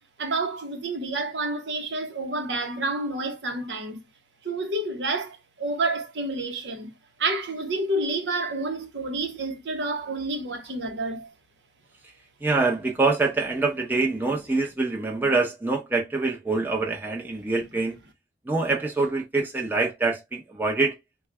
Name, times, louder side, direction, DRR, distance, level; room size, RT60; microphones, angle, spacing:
voice 1, 0.2-4.0 4.4-6.9 7.2-11.3, right 2 dB, 75° right, 0.9 m, -29 dB
voice 2, 12.4-18.0 18.5-20.9, right 3 dB, 10° right, 0.7 m, -25 dB
3.9 x 2.3 x 3.2 m
head